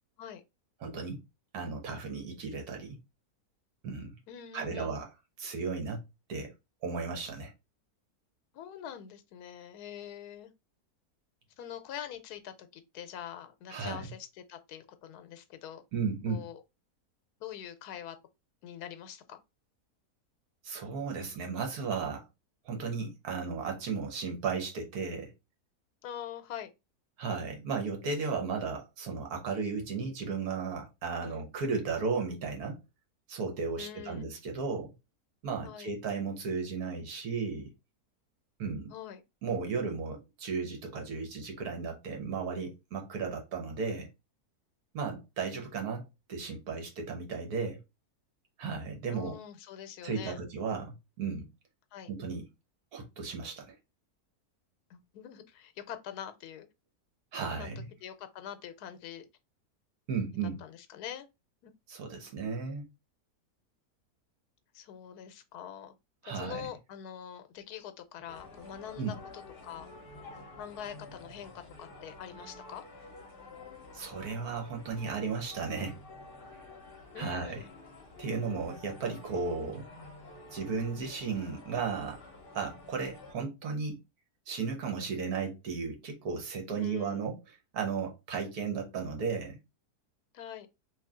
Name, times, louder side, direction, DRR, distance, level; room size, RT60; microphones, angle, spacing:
voice 1, 0.8-1.2 1.5-3.0 3.8-4.1 4.5-5.1 5.4-6.0 6.3-6.5 6.8-7.5 13.7-14.1 15.9-16.4 20.6-22.2 22.6-25.3 27.2-32.8 33.3-34.9 35.4-37.7 38.6-38.9 39.4-44.1 44.9-47.8 48.6-49.3 50.0-51.5 52.1-52.5 52.9-53.7 57.3-57.9 60.1-60.6 61.9-62.9 66.2-66.7 69.0-69.2 73.9-76.0 77.2-77.6 78.2-79.9 80.5-82.2 82.5-84.0 84.5-87.4 87.7-89.6, right 5 dB, 75° right, 1.5 m, -35 dB
voice 2, 4.3-4.9 8.5-10.5 11.6-15.8 16.3-16.6 17.4-18.2 18.6-19.4 26.0-26.7 31.2-31.5 33.8-34.3 35.6-35.9 38.9-39.2 45.1-45.2 49.1-50.4 51.9-52.1 54.9-56.7 57.6-57.7 58.0-59.3 60.4-61.3 61.6-61.7 64.7-65.9 66.3-69.9 70.6-71.5 71.8-72.8 77.1-77.7 86.7-87.3 90.3-90.7, left 9 dB, 85° left, 1.1 m, -44 dB
sound 1, 68.3-83.3, left 2 dB, 40° left, 1.0 m, -50 dB
3.2 x 2.7 x 3.6 m
omnidirectional pair, 1.6 m